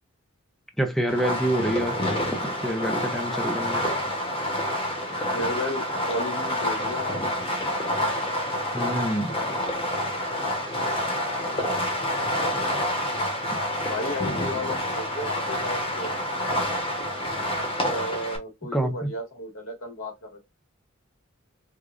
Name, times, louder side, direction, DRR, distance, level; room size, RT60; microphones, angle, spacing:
voice 1, 0.8-2.0 2.6-3.9 8.7-9.3 18.7-19.1, right 1 dB, ahead, 0.5 m, -26 dB
Fireworks, 1.1-18.4, equal, 25° left, 1.0 m, -28 dB
voice 2, 5.3-7.3 13.8-16.1 17.8-20.4, left 1 dB, 85° left, 1.8 m, -33 dB
4.8 x 2.4 x 2.4 m
head